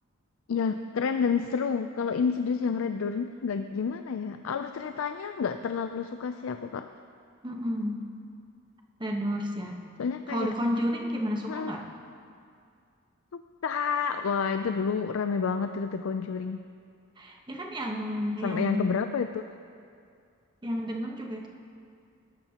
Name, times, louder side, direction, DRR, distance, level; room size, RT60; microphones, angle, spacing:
voice 1, 0.5-6.9 10.0-10.5 11.5-11.7 13.3-16.6 18.4-19.5, left 5 dB, 90° left, 8 dB, 0.4 m, -29 dB
voice 2, 7.4-8.1 9.0-9.8 10.3-11.8 17.2-19.0 20.6-21.5, equal, 25° right, 1 dB, 1.2 m, -31 dB
20.5 x 12.5 x 2.9 m, 2.4 s
head